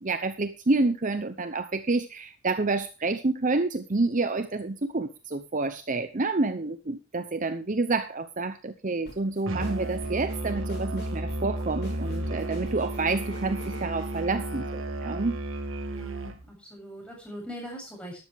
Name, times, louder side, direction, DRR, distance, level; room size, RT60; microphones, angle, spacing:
voice 1, 0.0-15.4, right 3 dB, 35° right, 10 dB, 0.7 m, -28 dB
sound 1, 9.1-15.4, equal, 50° left, 6.9 m, -48 dB
Musical instrument, 9.5-16.5, right 1 dB, 60° right, 1.7 m, -33 dB
voice 2, 15.8-18.2, equal, 5° left, -1 dB, 7.5 m, -41 dB
13.0 x 12.0 x 3.5 m, 0.31 s
head